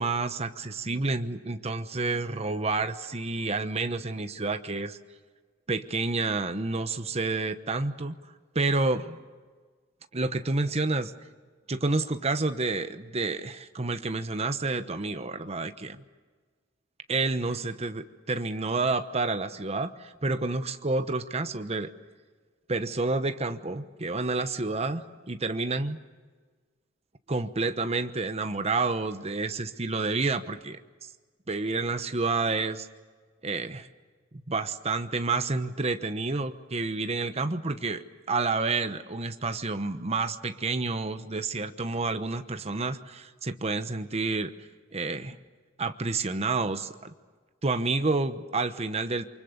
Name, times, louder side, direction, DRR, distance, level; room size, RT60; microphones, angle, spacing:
voice 1, 0.0-5.0 5.7-8.2 8.5-9.2 10.1-11.1 11.7-16.0 17.1-21.9 22.7-26.0 27.3-31.1 31.5-32.9 33.4-33.9 34.3-44.5 44.9-45.4 45.8-47.1 47.6-49.2, right 3 dB, 35° right, 9 dB, 1.0 m, -29 dB
28.5 x 24.5 x 6.7 m, 1.4 s
head